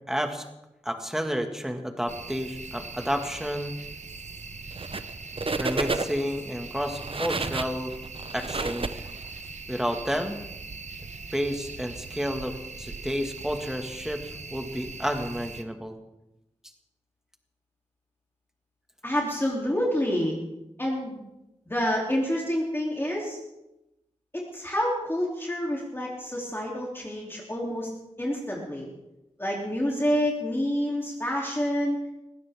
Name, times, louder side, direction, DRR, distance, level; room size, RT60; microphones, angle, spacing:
voice 1, 0.1-0.5 0.8-3.7 5.6-7.9 8.3-9.1 9.7-10.4 11.3-16.0, equal, 5° right, 5 dB, 1.9 m, -31 dB
sound 1, 2.1-15.6, right 4 dB, 80° right, 1.0 m, -41 dB
sound 2, 4.7-5.1 5.4-6.3 6.8-9.5, right 3 dB, 50° right, 0.8 m, -31 dB
voice 2, 19.0-20.4 20.8-21.2 21.7-23.4 24.3-27.9 28.2-28.9 29.4-32.0, equal, 20° left, -3 dB, 3.0 m, -28 dB
20.0 x 16.0 x 3.6 m, 0.92 s
wide cardioid pair, 80°, 12 cm